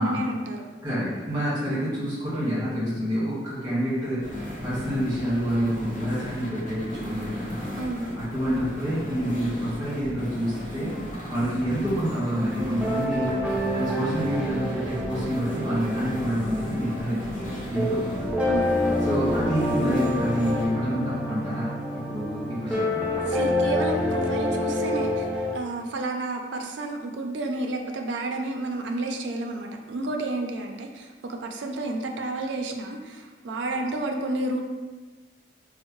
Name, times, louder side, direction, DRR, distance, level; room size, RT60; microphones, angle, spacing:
voice 1, 0.0-0.7 7.8-8.1 18.5-18.8 23.3-34.6, right 2 dB, 85° right, 3 dB, 0.4 m, -31 dB
voice 2, 0.8-7.7 8.1-11.0 11.3-13.3 13.7-18.2 19.0-21.7 22.1-23.1, equal, 25° right, -11 dB, 1.4 m, -28 dB
sound 1, 4.2-20.7, equal, 45° left, 0.7 m, -36 dB
sound 2, 12.3-25.5, left 1 dB, 5° right, 0.4 m, -28 dB
4.3 x 2.0 x 3.0 m, 1.3 s
head